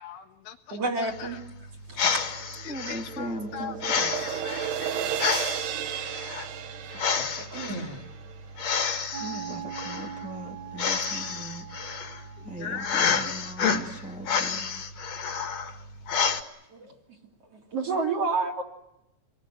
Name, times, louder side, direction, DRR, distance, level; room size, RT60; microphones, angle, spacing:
voice 1, 0.0-1.4 2.6-5.1 12.4-13.4, left 7 dB, 70° left, 5 dB, 3.3 m, -40 dB
voice 2, 0.7-1.4 1.9-2.3 2.9-3.0 7.4-8.0 16.7-16.9 17.5-18.6, right 3 dB, 35° right, 1 dB, 3.8 m, -30 dB
sound 1, 1.1-16.4, left 6 dB, 45° left, 2.8 m, -30 dB
voice 3, 2.6-4.1 9.2-11.7 12.4-14.7, right 1 dB, 5° right, -1 dB, 0.9 m, -39 dB
Cymbal Swish Long, 2.6-8.9, right 9 dB, 70° right, 3.3 m, -34 dB
sound 2, 9.1-13.3, right 9 dB, 50° right, 2.6 m, -42 dB
27.5 x 22.0 x 9.3 m, 0.85 s
omnidirectional pair, 5.0 m